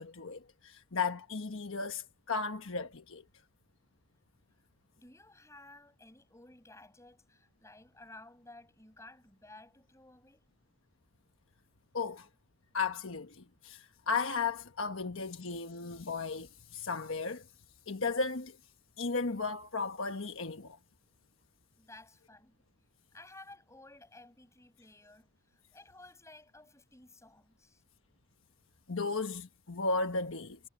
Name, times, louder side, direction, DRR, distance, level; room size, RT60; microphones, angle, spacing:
voice 1, 0.0-3.2 11.9-12.3 12.7-17.5 17.9-18.6 19.0-20.8 28.9-30.6, left 4 dB, 70° left, 1.2 m, -35 dB
voice 2, 5.0-10.4 21.8-22.6 23.1-27.8, left 2 dB, 15° left, 6.2 m, -55 dB
head